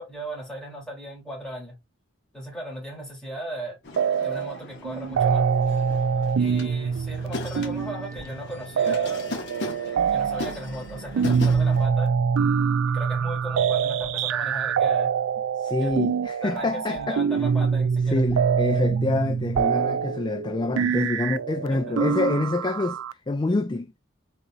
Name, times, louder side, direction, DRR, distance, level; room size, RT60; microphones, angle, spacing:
voice 1, 0.0-1.8 2.3-3.8 4.2-5.5 6.4-9.4 10.1-12.1 12.9-15.1 15.8-15.9 16.4-18.2 21.7-22.0, right 1 dB, 5° left, 2.7 m, -37 dB
sound 1, 3.8-11.9, left 2 dB, 55° left, 1.2 m, -38 dB
sound 2, 4.0-4.6 4.8-23.1, right 6 dB, 65° right, 0.3 m, -25 dB
sound 3, 8.1-8.4 11.4-11.7 13.9-14.3 15.8-16.0 16.9-17.2 17.6-17.7 18.2-18.6 19.4-19.9, right 1 dB, 15° right, 0.7 m, -43 dB
voice 2, 15.6-17.2 18.1-23.0 23.3-23.9, left 2 dB, 20° left, 0.3 m, -26 dB
4.1 x 3.9 x 2.4 m
head